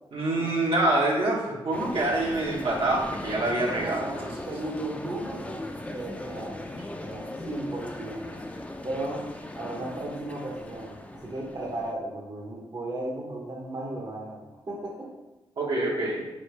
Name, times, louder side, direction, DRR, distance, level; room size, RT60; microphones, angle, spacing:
voice 1, 0.1-4.3 15.6-16.2, right 2 dB, 70° right, -4 dB, 1.0 m, -26 dB
sound 1, 1.7-11.9, left 1 dB, 15° left, 0.5 m, -38 dB
voice 2, 3.7-5.6 5.9-8.4 8.8-9.2 9.6-15.1, right 1 dB, 50° right, -3 dB, 0.8 m, -35 dB
3.9 x 3.1 x 3.2 m, 1.1 s
cardioid pair, 50°, 9 cm